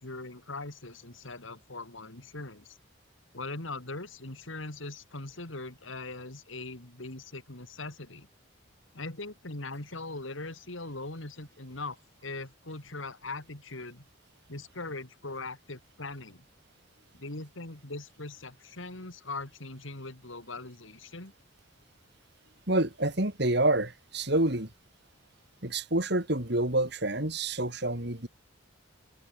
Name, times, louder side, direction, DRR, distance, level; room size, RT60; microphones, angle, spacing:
voice 1, 0.0-2.8 3.3-8.3 8.9-12.0 12.2-14.0 14.5-16.4 17.1-21.3, left 2 dB, 75° left, 3.0 m, -40 dB
voice 2, 22.7-24.7 25.6-28.3, right 1 dB, 55° right, 3.5 m, -28 dB
head